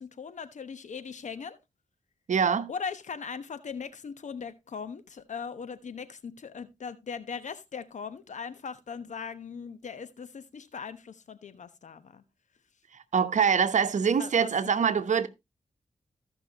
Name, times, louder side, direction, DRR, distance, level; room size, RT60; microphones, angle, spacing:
voice 1, 0.0-1.6 2.7-12.2 14.1-14.5 14.8-15.0, left 6 dB, 70° left, 1.1 m, -39 dB
voice 2, 2.3-2.7 13.1-15.3, right 6 dB, 70° right, 1.0 m, -24 dB
15.0 x 6.0 x 3.0 m
cardioid pair, 60°, 13 cm